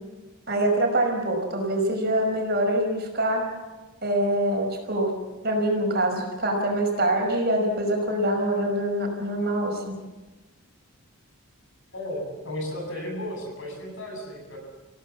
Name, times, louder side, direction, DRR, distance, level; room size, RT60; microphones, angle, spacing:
voice 1, 0.5-3.4 4.0-5.1 5.4-10.0, right 1 dB, 45° right, 2 dB, 5.4 m, -24 dB
voice 2, 11.9-14.6, left 1 dB, 60° left, 1 dB, 7.8 m, -34 dB
29.0 x 17.0 x 7.3 m, 1.2 s
head